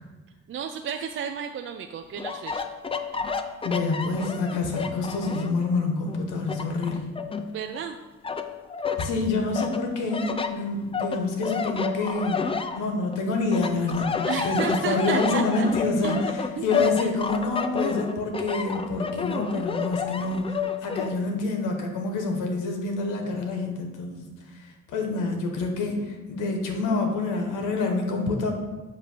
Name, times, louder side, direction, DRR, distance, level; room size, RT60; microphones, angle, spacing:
voice 1, 0.5-2.6 7.5-8.0 14.2-15.7 16.0-17.2 25.1-25.4, right 7 dB, 45° right, 5 dB, 0.4 m, -33 dB
sound 1, 2.2-5.6 6.0-7.8 8.2-9.1 9.5-13.2 13.5-21.1, left 6 dB, 20° left, 0.4 m, -30 dB
voice 2, 3.6-7.1 9.0-12.4 12.8-24.2 24.9-28.5, left 3 dB, 85° left, 3 dB, 1.2 m, -27 dB
7.7 x 2.7 x 6.0 m, 1.2 s
cardioid pair, 90°, 30 cm